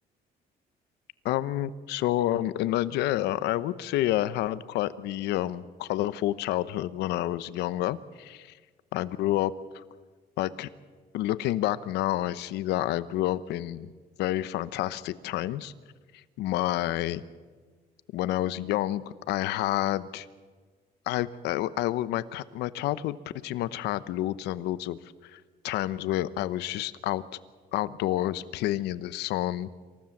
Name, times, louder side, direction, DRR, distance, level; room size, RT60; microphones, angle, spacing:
voice 1, 1.2-8.6 8.9-9.8 10.4-10.7 11.1-13.9 14.2-15.7 16.1-17.2 18.1-20.3 21.1-23.2 23.4-27.2 27.7-29.7, left 14 dB, 85° left, 16 dB, 0.9 m, -29 dB
27.0 x 15.5 x 7.3 m, 1.5 s
cardioid pair, 110°, 17 cm